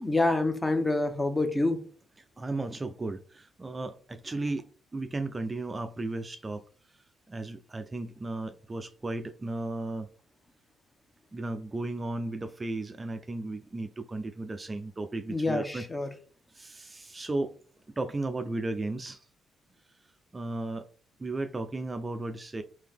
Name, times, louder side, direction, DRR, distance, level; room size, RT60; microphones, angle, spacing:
voice 1, 0.0-1.8 15.3-16.1, left 2 dB, 15° left, 0.7 m, -27 dB
voice 2, 2.4-6.6 7.3-10.1 11.3-15.8 16.5-17.5 18.0-19.2 20.3-20.8 21.2-22.6, right 2 dB, 25° right, 0.4 m, -35 dB
3.7 x 2.8 x 3.4 m
cardioid pair, 90°, 0 cm